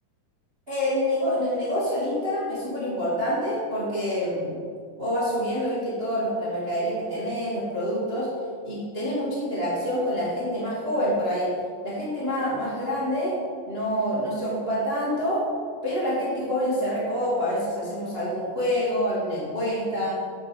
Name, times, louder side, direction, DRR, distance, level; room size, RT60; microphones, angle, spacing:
voice 1, 0.7-4.6 5.0-8.3 8.6-11.5 11.8-13.3 13.7-15.4 15.8-20.2, equal, 25° right, -9 dB, 1.4 m, -27 dB
8.9 x 5.9 x 4.9 m, 2.1 s
omnidirectional pair, 3.9 m